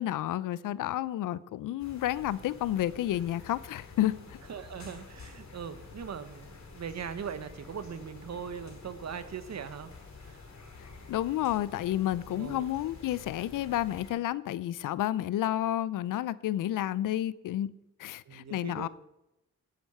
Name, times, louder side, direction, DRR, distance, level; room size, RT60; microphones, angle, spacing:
voice 1, 0.0-4.4 10.8-17.7 18.0-18.9, left 13 dB, 85° left, 0.5 m, -31 dB
sound 1, 1.8-14.1, left 3 dB, 60° left, 4.9 m, -49 dB
voice 2, 4.5-9.9 10.2-10.4 12.3-12.7 18.3-18.9, right 7 dB, 60° right, 1.2 m, -40 dB
14.5 x 7.9 x 5.6 m
cardioid pair, 60°, 31 cm